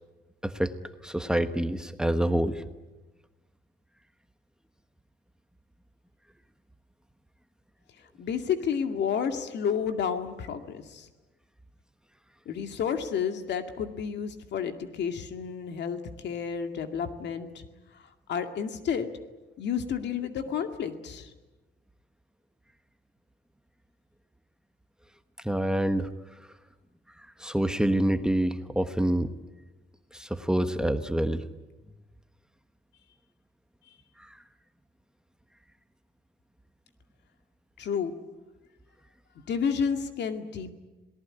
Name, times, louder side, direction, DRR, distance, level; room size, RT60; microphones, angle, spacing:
voice 1, 0.4-0.7 1.0-2.6 25.4-26.1 27.4-29.3 30.1-31.4, right 1 dB, 5° right, 9 dB, 1.2 m, -26 dB
voice 2, 8.2-11.1 12.5-17.6 17.9-18.0 18.3-19.1 19.6-21.3 37.8-38.1 39.5-40.7, left 7 dB, 75° left, 7 dB, 2.2 m, -31 dB
27.0 x 18.5 x 9.9 m, 1.1 s
cardioid pair, 120°, 18 cm